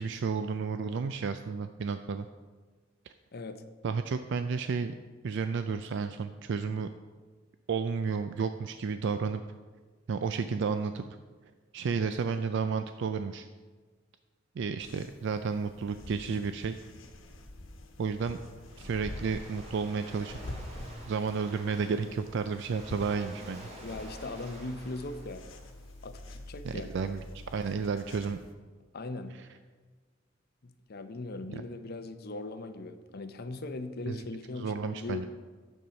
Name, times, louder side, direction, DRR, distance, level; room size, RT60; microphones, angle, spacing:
voice 1, 0.0-2.3 3.8-4.9 5.2-6.9 7.7-9.4 10.1-11.0 11.7-13.5 14.6-16.8 18.0-18.4 18.8-20.4 21.1-23.7 26.6-27.2 27.5-28.4 29.4-29.5 34.1-34.2 34.6-35.3, right 5 dB, 65° right, 9 dB, 0.4 m, -32 dB
voice 2, 3.3-3.6 23.8-25.4 26.0-26.9 28.9-29.4 30.6-35.2, left 2 dB, 55° left, 9 dB, 0.7 m, -39 dB
sound 1, 14.8-28.5, left 1 dB, 90° left, 1.1 m, -46 dB
Waves surf, 18.1-26.3, equal, 35° right, 2.0 m, -50 dB
9.4 x 7.2 x 5.1 m, 1.4 s
head